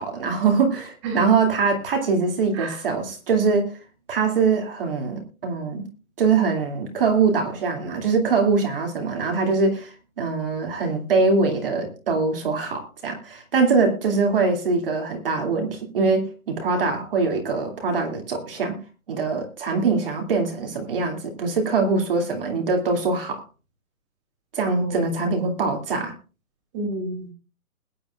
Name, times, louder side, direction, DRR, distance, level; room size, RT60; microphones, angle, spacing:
voice 1, 0.0-3.7 4.1-5.8 6.2-18.8 19.1-23.4 24.5-26.1, right 4 dB, 35° right, 2 dB, 2.5 m, -23 dB
voice 2, 24.7-25.4 26.7-27.3, right 1 dB, 20° right, 4 dB, 3.2 m, -29 dB
21.5 x 10.0 x 2.4 m, 0.32 s
hypercardioid pair, 170°, 45 cm